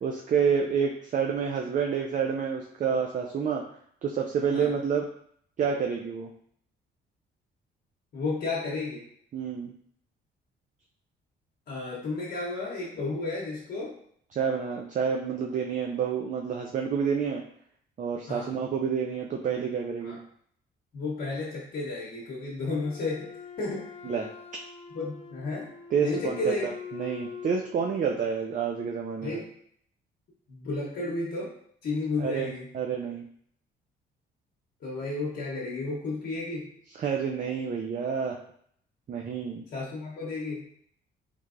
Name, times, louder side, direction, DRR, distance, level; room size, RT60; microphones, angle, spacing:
voice 1, 0.0-3.6 4.0-5.0 5.6-6.3 9.3-9.7 14.3-17.4 18.0-20.2 24.0-24.3 25.9-26.5 26.9-29.4 32.2-33.2 37.0-38.4 39.1-39.6, right 6 dB, 40° right, 1 dB, 0.4 m, -28 dB
voice 2, 8.1-9.0 11.7-14.0 18.3-18.5 20.0-20.2 20.9-23.3 23.6-23.9 24.9-25.7 26.0-26.7 29.2-29.5 30.5-31.5 31.8-32.7 34.8-36.7 39.7-40.7, left 3 dB, 60° left, -6 dB, 0.9 m, -32 dB
Wind instrument woodwind instrument, 22.8-27.7, left 6 dB, 30° left, 0.5 m, -43 dB
3.3 x 3.2 x 2.5 m, 0.65 s
cardioid pair, 90°, 20 cm